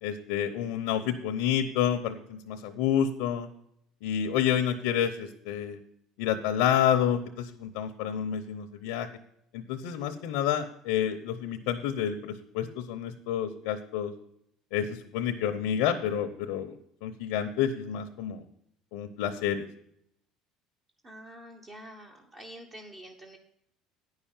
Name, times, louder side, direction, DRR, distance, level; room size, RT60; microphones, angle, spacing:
voice 1, 0.0-3.5 4.0-5.8 6.2-9.1 9.5-14.1 14.7-16.7 17.0-18.4 18.9-19.6, left 9 dB, 85° left, 5 dB, 0.8 m, -29 dB
voice 2, 21.0-23.4, right 1 dB, 30° right, 2 dB, 1.2 m, -47 dB
9.7 x 5.7 x 7.3 m, 0.73 s
supercardioid pair, 110°, 0 cm